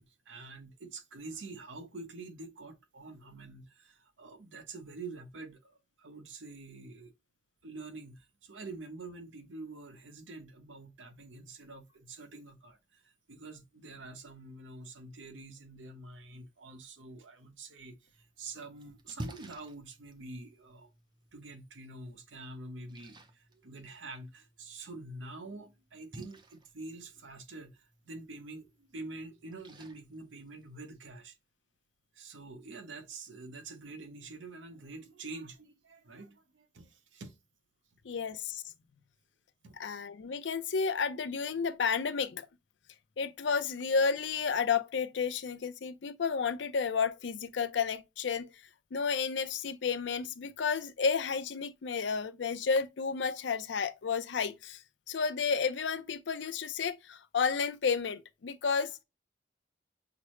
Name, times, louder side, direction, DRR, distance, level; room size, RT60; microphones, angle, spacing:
voice 1, 0.0-7.1 7.6-20.9 21.3-31.4 32.1-37.4 39.6-39.8, right 3 dB, 90° right, 0.8 m, -47 dB
Splash splatter, 18.1-31.1, right 1 dB, 25° right, 0.5 m, -52 dB
voice 2, 38.0-38.6 39.8-42.5 43.2-48.5 48.9-54.8 55.1-59.0, left 5 dB, 75° left, 0.5 m, -31 dB
5.9 x 2.0 x 3.0 m
head